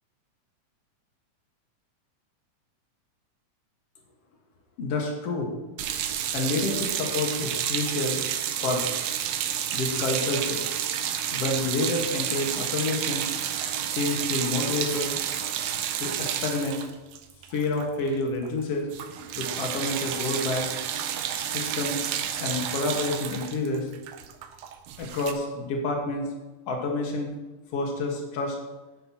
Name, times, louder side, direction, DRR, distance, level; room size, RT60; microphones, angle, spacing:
voice 1, 4.8-5.5 6.3-8.2 8.6-8.9 9.7-10.6 11.3-13.3 13.9-15.1 16.0-16.8 17.5-18.9 19.4-20.6 21.4-22.0 22.4-23.9 25.0-26.3 26.7-27.3 27.7-28.6, left 2 dB, 55° left, 1 dB, 2.3 m, -28 dB
sound 1, 5.8-18.2 18.4-18.6 18.9-25.3, right 9 dB, 80° right, 1.8 m, -30 dB
10.5 x 10.0 x 2.9 m, 1.1 s
omnidirectional pair, 3.6 m